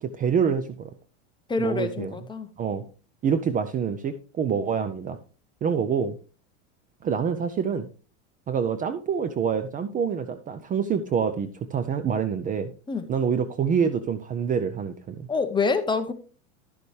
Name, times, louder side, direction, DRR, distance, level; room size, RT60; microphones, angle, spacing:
voice 1, 0.0-0.9 1.6-2.1 2.6-2.8 3.2-5.2 5.6-6.2 7.0-7.9 8.5-12.7 13.1-15.3, right 7 dB, 25° right, 11 dB, 0.5 m, -26 dB
voice 2, 1.5-2.5 12.9-13.1 15.3-16.1, left 4 dB, 15° left, 8 dB, 0.8 m, -26 dB
11.5 x 6.8 x 3.2 m, 0.36 s
supercardioid pair, 125°, 35 cm